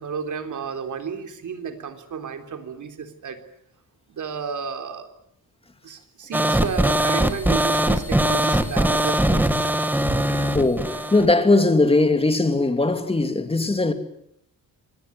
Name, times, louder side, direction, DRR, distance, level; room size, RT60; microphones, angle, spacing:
voice 1, 0.0-3.4 4.1-5.1 5.8-9.7, right 6 dB, 55° right, 3.6 m, -32 dB
sound 1, 6.3-11.3, right 1 dB, 5° right, 1.8 m, -21 dB
voice 2, 10.3-13.9, left 2 dB, 15° left, 2.8 m, -20 dB
26.5 x 19.5 x 9.7 m
wide cardioid pair, 145°, 35 cm